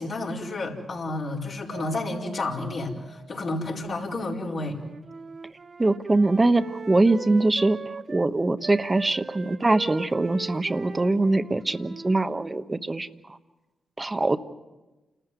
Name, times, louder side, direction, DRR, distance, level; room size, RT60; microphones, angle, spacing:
voice 1, 0.0-4.8, left 2 dB, 65° left, -3 dB, 4.7 m, -31 dB
Mallet percussion, 1.7-4.0, right 6 dB, 85° right, 2.6 m, -44 dB
Wind instrument woodwind instrument, 4.6-8.3 8.6-12.7, right 4 dB, 50° right, 0.9 m, -40 dB
voice 2, 5.8-7.8 8.1-13.1 14.0-14.4, right 2 dB, 30° right, 11 dB, 1.2 m, -23 dB
29.0 x 14.0 x 9.3 m, 1.1 s
supercardioid pair, 45°, 0 cm